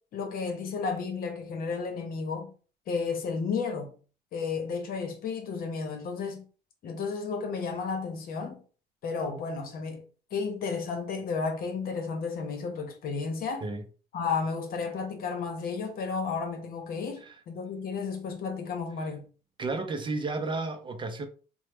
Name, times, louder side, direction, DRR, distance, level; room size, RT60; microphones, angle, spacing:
voice 1, 0.1-2.5 2.9-3.9 4.3-6.4 6.8-8.6 9.0-10.0 10.3-13.7 14.1-19.2, left 5 dB, 60° left, 0.8 m, -32 dB
voice 2, 19.6-21.3, right 3 dB, 30° right, 0.5 m, -32 dB
3.0 x 2.0 x 3.2 m
cardioid pair, 110°, 17 cm